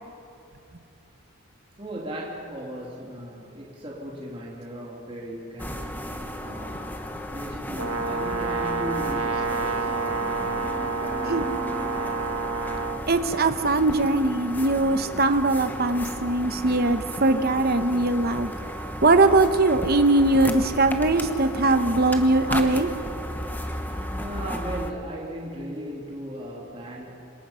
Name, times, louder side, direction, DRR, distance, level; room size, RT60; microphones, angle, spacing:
voice 1, 1.8-6.1 6.4-11.7 23.7-27.2, equal, 25° right, -3 dB, 2.7 m, -37 dB
sound 1, 5.6-24.9, left 1 dB, 10° left, 1.1 m, -34 dB
Brass instrument, 7.8-13.0, right 4 dB, 75° right, 1.4 m, -29 dB
voice 2, 13.1-18.5 19.0-22.9, right 2 dB, 45° right, 8 dB, 0.9 m, -21 dB
26.5 x 21.5 x 5.7 m, 2.7 s
head